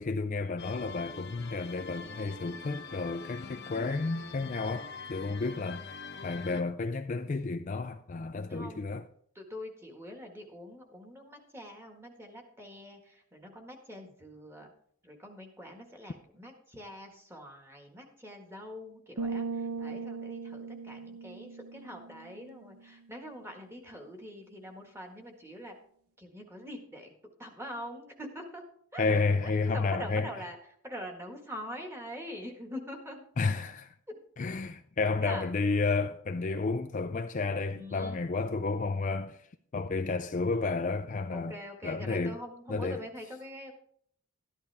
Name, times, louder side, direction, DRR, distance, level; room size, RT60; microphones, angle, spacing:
voice 1, 0.0-5.9 6.2-9.0 29.0-30.3 33.4-33.9 34.4-39.4 39.7-41.5 41.8-42.3 42.7-43.0, left 3 dB, 35° left, 0.4 m, -31 dB
sound 1, 0.6-6.6, left 5 dB, 50° left, 0.9 m, -44 dB
voice 2, 3.4-4.0 8.5-8.9 9.3-14.7 15.0-25.7 26.2-27.1 27.4-28.6 28.9-30.6 30.8-33.2 34.1-34.2 35.0-35.5 37.7-38.2 41.3-43.7, equal, 10° right, 1.7 m, -44 dB
sound 2, 19.2-22.9, right 4 dB, 85° right, 0.7 m, -38 dB
13.0 x 11.0 x 3.4 m
head